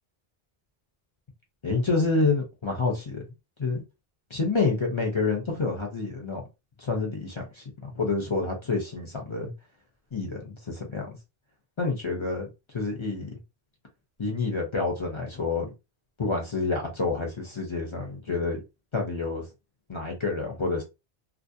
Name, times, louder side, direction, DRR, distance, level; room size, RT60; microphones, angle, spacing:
voice 1, 1.6-3.3 3.6-3.8 4.3-6.4 6.8-9.5 10.1-11.2 11.8-12.5 12.7-13.4 14.2-15.7 16.2-18.6 18.9-19.4 19.9-20.8, left 3 dB, 35° left, 0.6 m, -28 dB
2.5 x 2.0 x 2.6 m
omnidirectional pair, 1.1 m